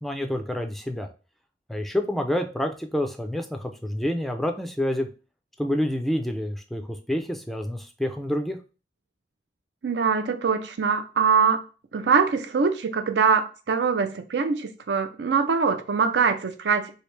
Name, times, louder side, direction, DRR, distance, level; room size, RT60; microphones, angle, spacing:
voice 1, 0.0-1.1 1.7-5.1 5.6-8.6, left 1 dB, ahead, 0.3 m, -28 dB
voice 2, 9.8-11.6 11.9-16.9, right 5 dB, 80° right, 0.5 m, -23 dB
3.2 x 2.8 x 3.1 m
head